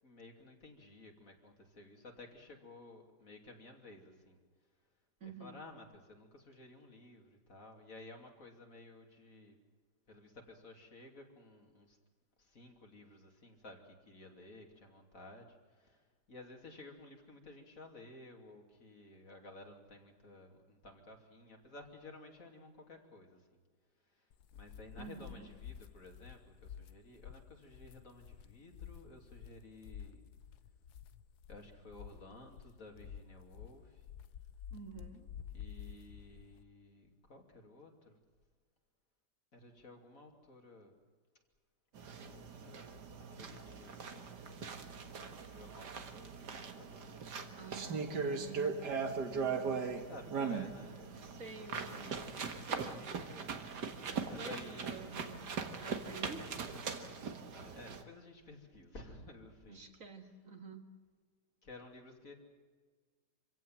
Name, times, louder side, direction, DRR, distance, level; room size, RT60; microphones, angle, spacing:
voice 1, 0.0-4.4 5.2-9.6 10.1-12.0 12.4-23.6 24.1-30.3 31.5-34.1 35.5-38.2 39.5-40.9 42.0-42.9 43.2-44.2 45.2-47.7 49.8-51.1 52.2-52.7 54.2-55.2 57.5-59.8 61.6-62.3, left 2 dB, 55° left, 2 dB, 3.2 m, -55 dB
voice 2, 5.2-5.6 25.0-25.5 34.7-35.3 47.6-48.8 49.3-49.8 50.6-53.5 54.2-56.5 59.7-60.8, right 4 dB, 55° right, 5 dB, 2.3 m, -50 dB
sound 1, 24.3-36.6, left 9 dB, 70° left, 1.4 m, -51 dB
sound 2, 42.0-58.0, right 5 dB, 80° right, 2.3 m, -40 dB
26.0 x 17.0 x 7.6 m, 1.5 s
omnidirectional pair, 1.8 m